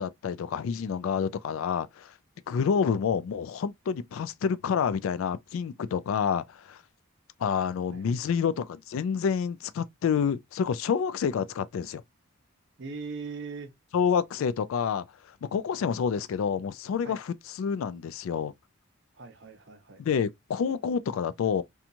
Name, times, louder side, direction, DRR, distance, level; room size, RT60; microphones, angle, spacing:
voice 1, 0.0-2.1 2.5-6.8 7.4-12.0 13.9-15.0 15.4-18.5 20.0-21.6, left 6 dB, 75° left, 0.3 m, -28 dB
voice 2, 7.9-8.3 12.8-13.7 17.0-17.2 19.1-20.0, right 4 dB, 55° right, 0.6 m, -40 dB
2.8 x 2.3 x 2.4 m
head